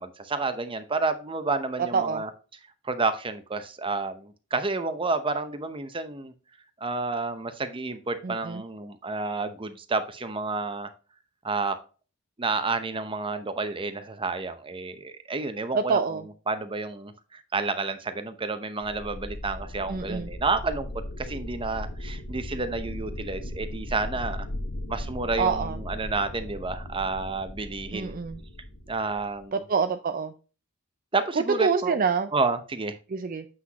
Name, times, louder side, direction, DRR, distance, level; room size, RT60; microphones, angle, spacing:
voice 1, 0.0-2.3 2.8-6.3 6.8-10.9 11.4-11.8 12.4-16.2 16.5-24.5 24.9-28.1 28.9-29.6 31.1-32.0 32.3-33.0, right 3 dB, 25° right, 10 dB, 0.8 m, -30 dB
voice 2, 1.9-2.2 8.2-8.6 15.7-16.2 19.9-20.3 25.4-25.8 27.9-28.4 29.5-30.3 31.4-32.3 33.1-33.5, right 5 dB, 40° right, 9 dB, 0.4 m, -26 dB
sound 1, 18.8-29.4, left 1 dB, 55° left, 1.2 m, -37 dB
7.8 x 6.0 x 3.0 m, 0.36 s
head